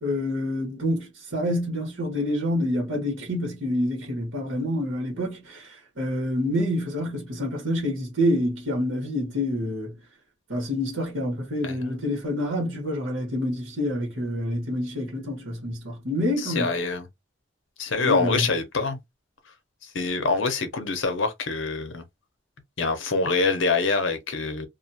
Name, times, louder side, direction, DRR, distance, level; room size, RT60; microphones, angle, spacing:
voice 1, 0.0-9.9 10.5-16.7 18.0-18.4, left 1 dB, 90° right, 1.3 m, -27 dB
voice 2, 11.6-12.0 16.4-17.0 17.8-19.0 19.9-22.0 22.8-24.7, left 4 dB, 75° left, 0.7 m, -25 dB
2.4 x 2.3 x 2.7 m
head